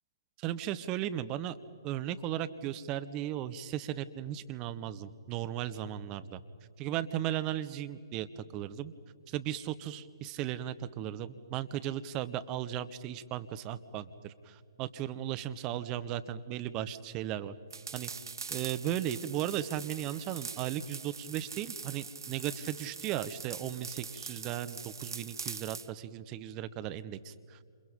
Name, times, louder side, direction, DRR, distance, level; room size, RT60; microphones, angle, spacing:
voice 1, 0.4-1.6 1.8-6.4 6.8-8.9 9.3-17.5 17.9-18.1 18.5-27.7, right 11 dB, 25° right, 12 dB, 1.0 m, -36 dB
sound 1, 17.7-25.9, right 5 dB, 65° right, 0.6 m, -43 dB
30.0 x 28.0 x 5.3 m, 2.2 s
figure-of-eight pair, 125°, 2 cm